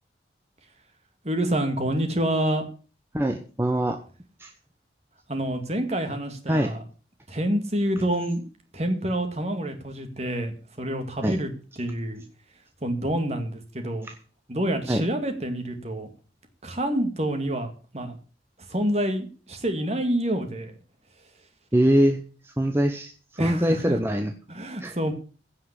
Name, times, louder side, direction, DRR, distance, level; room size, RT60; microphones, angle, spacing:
voice 1, 1.2-2.6 5.3-6.8 7.3-8.4 8.7-11.5 11.8-12.2 12.8-14.1 14.5-16.1 16.6-18.2 18.7-20.7 23.4-24.0 24.5-25.1, right 1 dB, 40° right, 6 dB, 2.3 m, -27 dB
voice 2, 3.1-4.0 4.4-4.5 6.5-6.7 11.2-11.4 14.0-14.1 14.9-15.0 21.7-23.1 23.4-24.3 24.8-24.9, equal, 15° right, 4 dB, 1.0 m, -23 dB
16.0 x 5.7 x 8.3 m, 0.39 s
head